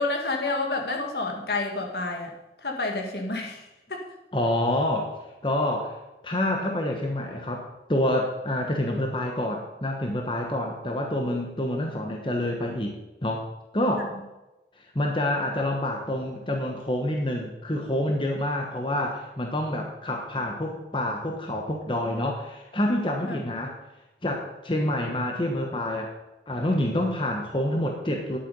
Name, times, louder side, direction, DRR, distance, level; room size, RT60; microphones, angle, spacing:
voice 1, 0.0-2.3 2.6-3.6 3.9-4.0 23.2-23.4, left 3 dB, 65° left, 2 dB, 1.9 m, -29 dB
voice 2, 4.3-6.0 6.2-12.9 13.2-13.5 13.7-14.1 14.8-23.7 24.2-26.1 26.5-28.4, left 1 dB, 30° left, 1 dB, 1.2 m, -27 dB
11.0 x 8.5 x 5.4 m, 1.0 s
head